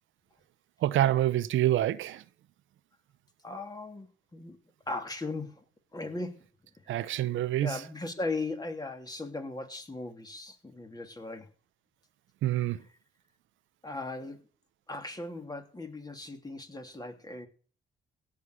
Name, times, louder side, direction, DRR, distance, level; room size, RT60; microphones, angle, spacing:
voice 1, 0.8-2.2 6.9-7.8 12.4-12.8, right 13 dB, 80° right, 0.8 m, -26 dB
voice 2, 3.4-4.6 4.9-5.6 5.9-6.4 6.8-7.0 7.6-11.5 13.8-14.4 14.9-17.5, left 2 dB, 20° left, 3.0 m, -38 dB
16.5 x 6.6 x 8.0 m
cardioid pair, 90°, 20 cm